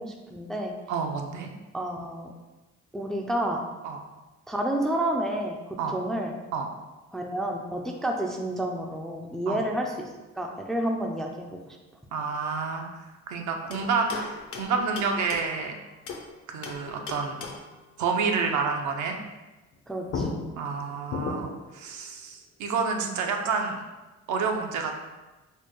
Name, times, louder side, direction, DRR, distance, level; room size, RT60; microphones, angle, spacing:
voice 1, 0.0-0.7 1.7-2.3 2.9-3.6 4.5-6.3 7.1-11.8 19.9-20.3, right 1 dB, ahead, 1 dB, 0.3 m, -30 dB
voice 2, 0.9-1.5 3.8-4.0 5.8-6.0 6.5-6.7 9.5-9.6 12.1-15.7 16.5-17.4 18.0-19.2 20.6-23.8 24.3-24.9, right 5 dB, 70° right, 3 dB, 0.6 m, -29 dB
sound 1, 13.7-16.3 16.6-17.8 19.7-19.8 20.1-21.7, left 3 dB, 50° left, 0.6 m, -36 dB
4.3 x 2.2 x 3.0 m, 1.1 s
cardioid pair, 90°, 30 cm